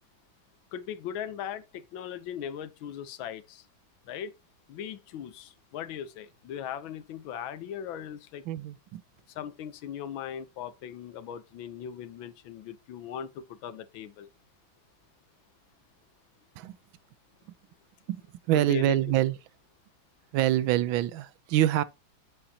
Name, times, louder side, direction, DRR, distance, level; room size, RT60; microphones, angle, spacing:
voice 1, 0.7-3.7 4.1-4.3 4.7-8.5 9.3-14.3 18.5-19.1, left 9 dB, 85° left, 1.6 m, -39 dB
voice 2, 8.5-9.0 16.6-16.8 18.1-18.2 18.5-19.3 20.3-21.8, right 13 dB, 85° right, 1.4 m, -25 dB
8.1 x 7.7 x 2.8 m
omnidirectional pair, 2.1 m